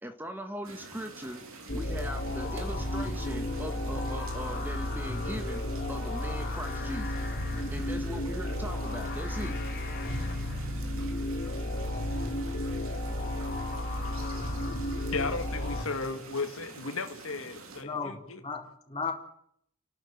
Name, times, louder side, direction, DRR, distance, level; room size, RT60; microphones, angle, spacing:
voice 1, 0.0-7.2 7.7-9.6, equal, 10° right, 6 dB, 1.7 m, -40 dB
sound 1, 0.6-17.8, right 3 dB, 70° right, 4.1 m, -47 dB
sound 2, 1.7-15.8, left 1 dB, 45° left, 3.4 m, -33 dB
voice 2, 15.1-18.4, left 3 dB, 65° left, 7 dB, 1.9 m, -35 dB
voice 3, 17.8-19.1, left 5 dB, 25° left, 2 dB, 4.5 m, -35 dB
30.0 x 12.5 x 9.5 m, 0.69 s
head